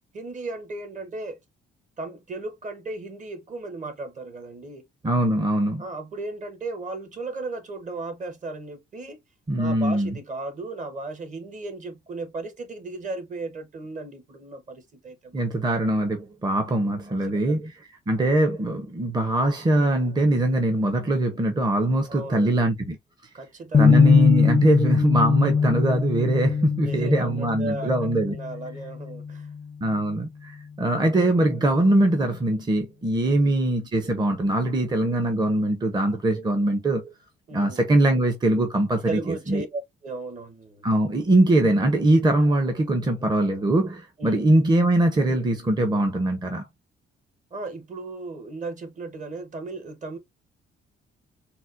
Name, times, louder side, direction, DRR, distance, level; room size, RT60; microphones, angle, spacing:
voice 1, 0.1-1.4 2.0-4.8 5.8-9.2 9.6-15.4 17.1-17.6 22.1-22.7 23.3-24.0 26.8-27.9 28.3-29.5 33.3-33.5 37.5-37.8 39.1-40.9 44.2-44.5 47.5-50.2, right 3 dB, 40° right, 1.0 m, -35 dB
voice 2, 5.0-5.8 9.5-10.1 15.3-17.7 18.1-23.0 23.8-28.4 29.8-37.0 37.5-39.6 40.8-46.6, right 1 dB, 20° right, 0.7 m, -22 dB
sound 1, 23.7-29.8, left 5 dB, 25° left, 0.4 m, -22 dB
4.1 x 2.0 x 2.4 m
cardioid pair, 90°, 20 cm